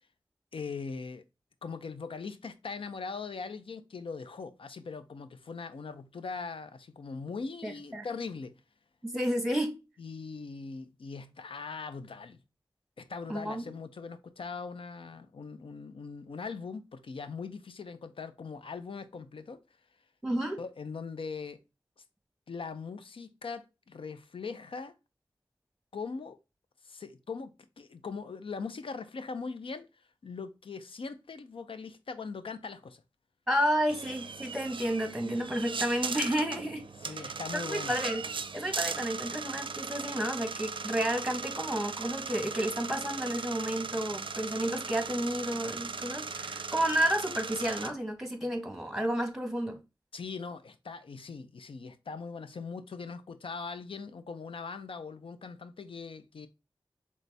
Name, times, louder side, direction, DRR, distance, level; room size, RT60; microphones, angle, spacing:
voice 1, 0.5-1.2 1.6-8.5 10.0-12.4 13.0-19.6 20.6-21.6 22.5-24.9 25.9-26.4 26.8-29.9 30.2-33.0 37.0-38.0 50.1-56.5, left 4 dB, 90° left, 0.5 m, -40 dB
voice 2, 7.6-8.1 9.0-9.7 13.3-13.7 20.2-20.6 33.5-36.8 37.1-38.2 38.5-49.8, equal, 5° right, 1.0 m, -31 dB
sound 1, 33.9-47.9, right 4 dB, 70° right, 0.4 m, -38 dB
4.0 x 3.1 x 3.3 m
wide cardioid pair, 65°, 9 cm